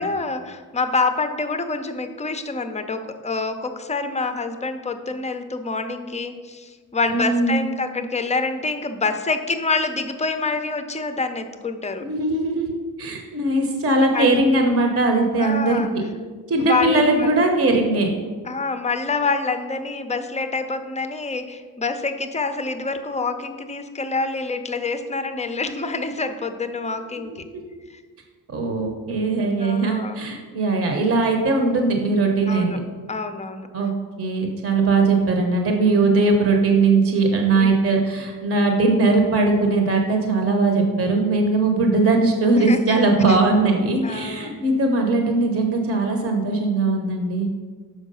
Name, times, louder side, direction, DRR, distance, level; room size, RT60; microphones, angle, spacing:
voice 1, 0.0-12.1 14.1-14.4 15.4-15.9 16.6-17.3 18.5-27.4 27.9-28.0 29.6-30.2 32.5-32.8 33.1-33.7 37.5-37.8 42.5-43.0 43.3-43.4 44.0-44.6, left 3 dB, 20° left, 8 dB, 0.5 m, -26 dB
voice 2, 7.1-7.6 12.1-16.0 16.5-18.1 28.5-32.7 33.7-33.9 34.2-47.5, right 3 dB, 35° right, 3 dB, 0.9 m, -20 dB
6.4 x 4.5 x 5.4 m, 1.5 s
cardioid pair, 105°, 38 cm